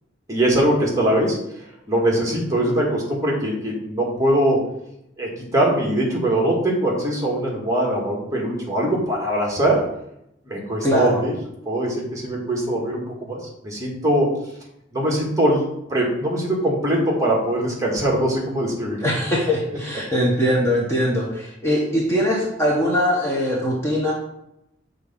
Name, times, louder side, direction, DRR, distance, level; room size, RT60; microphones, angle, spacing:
voice 1, 0.3-1.4 1.9-4.6 5.2-9.8 10.4-11.3 11.6-13.0 13.3-13.4 13.6-14.3 14.9-19.0, right 1 dB, 15° right, -2 dB, 1.6 m, -21 dB
voice 2, 10.8-11.2 18.8-24.1, equal, 15° left, -4 dB, 1.1 m, -21 dB
6.6 x 3.9 x 5.4 m, 0.79 s
head